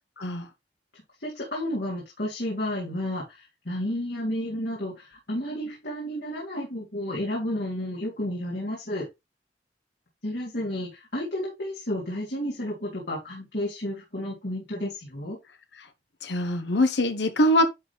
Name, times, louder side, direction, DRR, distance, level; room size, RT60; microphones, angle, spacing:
voice 1, 1.2-9.0 10.2-15.4, left 1 dB, 65° left, 3.4 m, -31 dB
voice 2, 16.2-17.6, left 1 dB, 80° left, 1.0 m, -23 dB
11.0 x 4.0 x 3.5 m
head